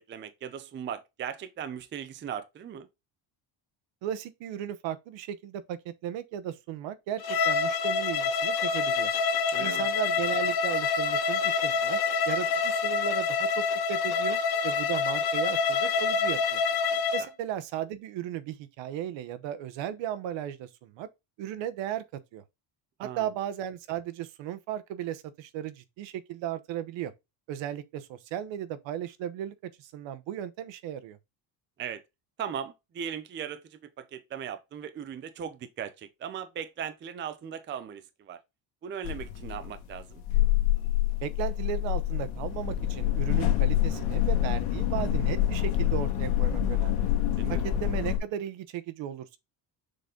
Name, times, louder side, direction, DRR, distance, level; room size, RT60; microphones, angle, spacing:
voice 1, 0.0-2.9 9.5-9.8 17.2-17.3 23.0-23.3 31.8-32.0 32.4-38.4 38.8-40.2 47.4-47.6, right 8 dB, 25° right, 0.5 m, -38 dB
voice 2, 4.0-9.1 9.6-12.0 12.2-14.4 14.6-16.6 17.1-21.1 21.4-22.4 23.0-27.1 27.5-31.2 41.2-47.1 47.5-49.4, right 10 dB, 65° right, 1.0 m, -36 dB
Bowed string instrument, 7.2-17.3, left 5 dB, 50° left, 1.3 m, -27 dB
sound 1, 39.0-48.2, left 12 dB, 90° left, 2.0 m, -26 dB
6.7 x 4.0 x 3.7 m
cardioid pair, 170°, 47 cm